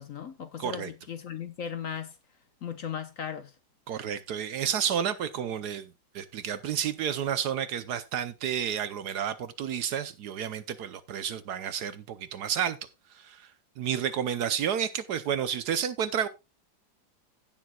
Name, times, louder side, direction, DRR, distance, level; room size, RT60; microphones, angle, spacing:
voice 1, 0.0-2.2 2.6-3.5, left 8 dB, 55° left, 1.1 m, -37 dB
voice 2, 0.6-0.9 3.9-12.8 13.1-13.5 13.8-16.3, right 8 dB, 65° right, 1.2 m, -31 dB
16.5 x 7.2 x 2.3 m
omnidirectional pair, 2.0 m